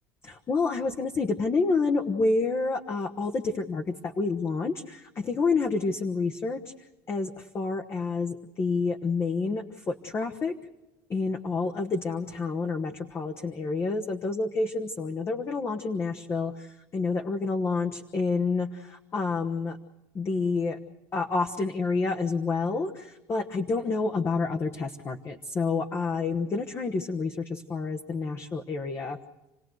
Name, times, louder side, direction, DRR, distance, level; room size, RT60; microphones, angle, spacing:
voice 1, 0.2-6.7 7.1-10.5 11.1-19.8 20.1-20.8 21.1-29.2, left 4 dB, 30° left, 4 dB, 1.2 m, -28 dB
29.0 x 17.5 x 8.0 m, 1.0 s
supercardioid pair, 110°, 8 cm